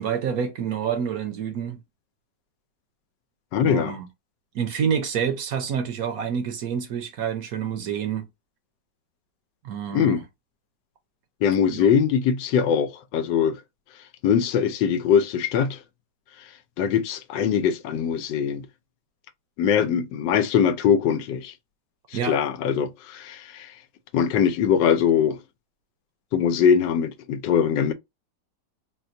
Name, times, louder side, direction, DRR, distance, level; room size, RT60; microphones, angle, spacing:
voice 1, 0.0-1.8 3.6-4.1 4.5-8.3 9.6-10.2 11.7-11.9 22.1-22.4, right 7 dB, 65° right, 1.0 m, -28 dB
voice 2, 3.5-4.0 9.9-10.2 11.4-13.6 14.2-15.8 16.8-18.7 19.6-21.5 22.3-23.7 24.1-25.4 26.3-27.9, left 7 dB, 85° left, 1.3 m, -22 dB
4.1 x 2.3 x 2.5 m
omnidirectional pair, 1.9 m